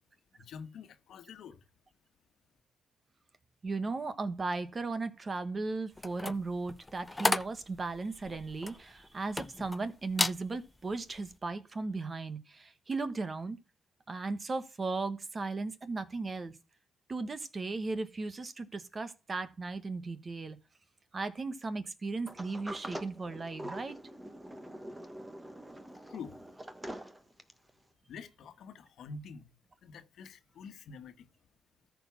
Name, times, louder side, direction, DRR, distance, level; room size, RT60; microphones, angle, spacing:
voice 1, 0.4-1.6 26.1-26.4 28.1-29.5 29.8-31.3, left 5 dB, 70° left, 1.4 m, -47 dB
voice 2, 3.6-13.6 14.1-16.5 17.1-20.6 21.1-24.0, right 3 dB, 30° right, 1.3 m, -36 dB
sound 1, 6.0-9.8 10.1-10.4 10.9-11.2, left 2 dB, 15° left, 0.5 m, -33 dB
Sliding door, 22.3-27.7, right 1 dB, 15° right, 1.4 m, -44 dB
14.0 x 4.8 x 5.9 m
cardioid pair, 90°, 0 cm